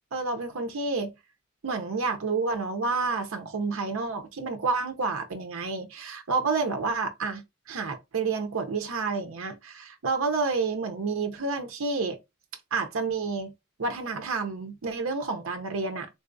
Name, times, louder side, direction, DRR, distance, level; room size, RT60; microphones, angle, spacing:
voice 1, 0.1-1.1 1.6-12.2 12.7-13.5 13.8-16.1, right 4 dB, 70° right, 0.6 m, -29 dB
3.9 x 2.4 x 2.5 m
head